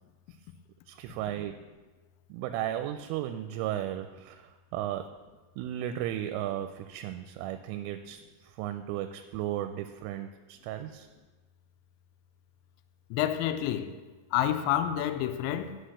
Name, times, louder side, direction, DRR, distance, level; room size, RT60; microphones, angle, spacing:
voice 1, 0.9-1.5 2.3-5.0 5.6-11.1, right 12 dB, 85° right, 3.1 m, -35 dB
voice 2, 13.1-14.0 14.3-15.8, left 11 dB, 85° left, 2.6 m, -28 dB
9.9 x 6.3 x 6.5 m
omnidirectional pair, 5.6 m